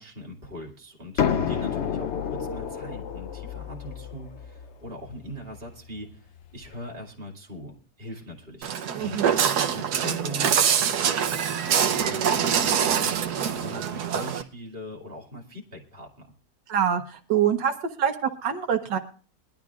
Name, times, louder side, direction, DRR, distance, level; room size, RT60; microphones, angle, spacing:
voice 1, 0.0-16.3, equal, 30° right, 0 dB, 2.6 m, -41 dB
sound 1, 1.2-6.8, left 8 dB, 65° left, 0.7 m, -31 dB
Walk footsteps, 8.6-14.4, right 8 dB, 65° right, 1.4 m, -24 dB
voice 2, 8.9-9.4 16.7-17.7 18.0-19.0, right 8 dB, 80° right, 5 dB, 1.6 m, -25 dB
21.5 x 12.0 x 2.4 m, 0.40 s
omnidirectional pair, 1.9 m